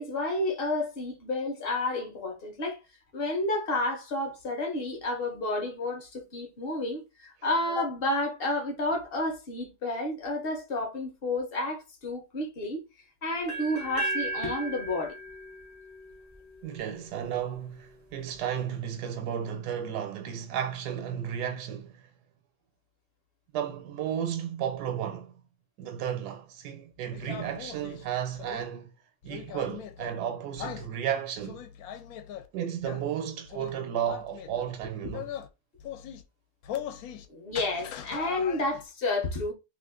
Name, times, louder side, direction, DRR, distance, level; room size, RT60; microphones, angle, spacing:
voice 1, 0.0-2.8 3.1-12.8 13.2-15.1 37.3-39.5, left 2 dB, 50° left, 0.8 m, -31 dB
sound 1, 13.5-17.4, right 1 dB, 20° left, 0.4 m, -36 dB
voice 2, 16.6-22.1 23.5-25.4 25.8-28.9 29.2-31.6 32.5-35.3, right 9 dB, 85° right, 1.2 m, -33 dB
sound 2, 27.1-28.6 29.2-30.1 30.6-30.9 31.4-32.5 32.8-33.1 33.5-33.7 34.1-34.7 35.1-35.5 35.8-36.2 36.6-37.3 37.5-38.8, left 9 dB, 75° left, 1.0 m, -40 dB
2.7 x 2.4 x 3.5 m
omnidirectional pair, 1.7 m